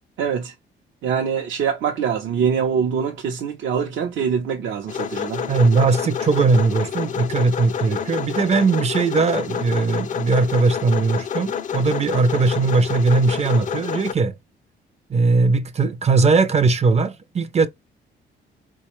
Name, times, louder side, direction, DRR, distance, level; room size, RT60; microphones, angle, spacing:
voice 1, 0.2-0.5 1.0-5.4, right 7 dB, 75° right, 0.7 m, -24 dB
sound 1, 4.9-14.1, left 8 dB, 40° left, 0.4 m, -28 dB
voice 2, 5.5-14.3 15.1-17.7, right 4 dB, 35° right, 0.5 m, -19 dB
4.2 x 2.2 x 3.0 m
cardioid pair, 90°, 20 cm